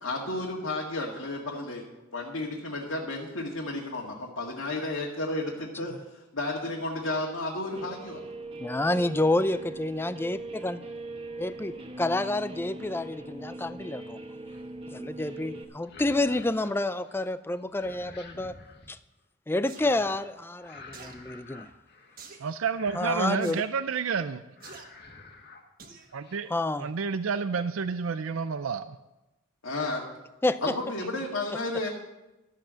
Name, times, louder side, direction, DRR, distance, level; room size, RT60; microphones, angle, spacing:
voice 1, 0.0-1.8 2.1-8.2 29.6-30.0 30.6-31.9, left 2 dB, 75° left, -2 dB, 1.9 m, -32 dB
Guitar, 7.7-15.6, right 2 dB, 25° right, 1.3 m, -41 dB
voice 2, 8.6-10.8 11.4-14.2 14.9-18.5 18.9-19.0 19.5-21.7 22.9-23.6 26.5-26.9 30.4-30.6, left 2 dB, 10° left, 13 dB, 0.4 m, -29 dB
sound 1, 14.5-14.9 15.7-17.3 17.6-18.9 19.7-20.3 20.6-22.4 22.7-23.7 24.1-24.3 24.6-25.6 26.0-26.4, left 3 dB, 55° left, 1.7 m, -49 dB
sound 2, 19.7-19.9 20.9-21.2 22.2-22.5 23.4-23.6 24.6-24.9 25.8-26.1 26.5-26.6, right 5 dB, 45° right, 1.5 m, -47 dB
voice 3, 22.4-24.4 26.1-26.5 26.8-28.9, right 5 dB, 75° right, 11 dB, 0.5 m, -30 dB
13.0 x 7.8 x 7.5 m, 1.0 s
head